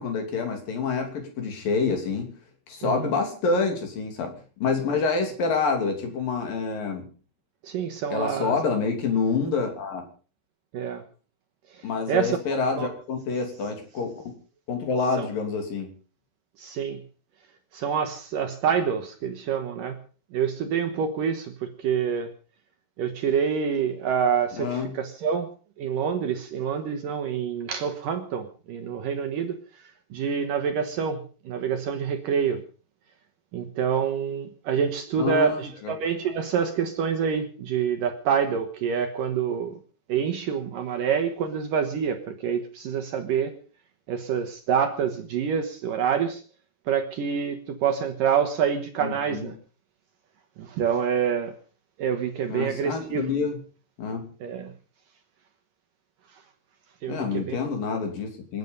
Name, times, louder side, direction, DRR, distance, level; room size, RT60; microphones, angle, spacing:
voice 1, 0.0-2.3 2.7-4.3 4.6-7.1 8.1-10.0 11.8-14.1 14.7-15.9 24.6-24.9 35.2-35.9 49.0-49.5 52.5-53.6 54.0-54.2 57.1-58.6, left 4 dB, 55° left, 4 dB, 4.5 m, -27 dB
voice 2, 2.8-3.1 7.6-8.6 10.7-11.0 11.7-12.9 15.2-15.3 16.6-17.0 17.7-20.0 20.3-22.3 23.0-25.5 25.8-32.6 33.5-39.8 40.1-43.6 44.1-46.4 46.9-49.6 50.6-51.6 52.0-53.3 54.4-54.7 57.0-57.6, right 7 dB, 65° right, 7 dB, 2.4 m, -27 dB
27.0 x 9.3 x 5.4 m, 0.39 s
omnidirectional pair, 4.9 m